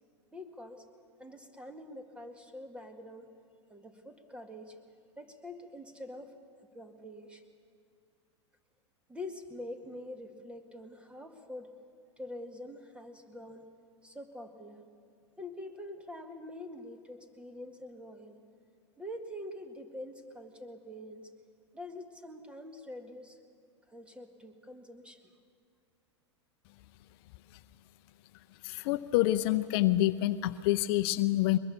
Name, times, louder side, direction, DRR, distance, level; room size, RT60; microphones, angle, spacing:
voice 1, 0.3-0.9 1.2-3.3 3.7-4.8 5.2-6.4 6.7-7.4 9.1-11.7 12.2-13.7 14.0-14.8 15.4-18.4 19.0-21.3 21.7-23.4 23.9-25.3, left 1 dB, 5° right, 6 dB, 2.0 m, -45 dB
voice 2, 28.6-31.6, left 15 dB, 55° left, 13 dB, 0.6 m, -27 dB
22.5 x 21.0 x 7.0 m, 2.3 s
hypercardioid pair, 105°, 15 cm